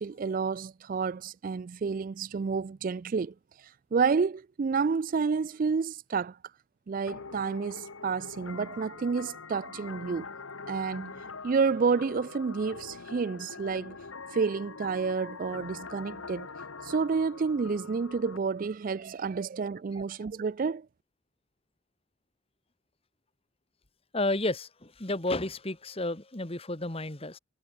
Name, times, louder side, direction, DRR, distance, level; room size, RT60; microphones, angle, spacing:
voice 1, 0.0-6.4 6.9-10.3 10.7-14.0 14.3-16.5 16.8-20.9, right 5 dB, 40° right, 0.3 m, -30 dB
sound 1, 7.1-18.4, left 4 dB, 85° left, 1.8 m, -44 dB
voice 2, 24.1-27.4, left 2 dB, 30° left, 1.8 m, -31 dB
head